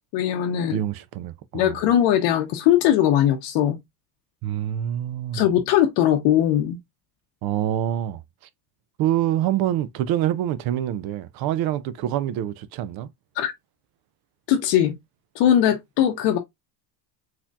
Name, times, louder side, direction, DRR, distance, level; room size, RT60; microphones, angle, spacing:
voice 1, 0.1-0.8 1.5-3.8 5.3-6.8 13.4-13.5 14.5-14.9 15.4-16.4, left 11 dB, 60° left, 0.8 m, -20 dB
voice 2, 0.7-1.8 4.4-5.5 7.4-8.2 9.0-13.1, right 12 dB, 50° right, 0.5 m, -26 dB
4.1 x 2.9 x 2.3 m
hypercardioid pair, 85°, 50 cm